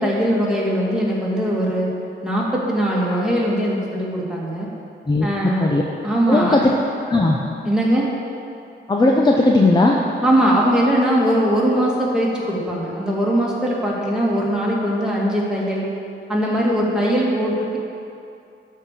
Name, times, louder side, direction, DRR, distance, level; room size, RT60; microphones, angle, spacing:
voice 1, 0.0-1.9 2.2-4.7 5.2-5.7 6.0-6.6 7.6-8.1 10.2-15.9 16.3-17.8, equal, 5° right, -5 dB, 2.3 m, -20 dB
voice 2, 6.3-6.6 7.1-7.4 8.9-10.0, left 2 dB, 20° left, -1 dB, 0.8 m, -16 dB
12.0 x 4.7 x 6.8 m, 2.6 s
cardioid pair, 95°, 20 cm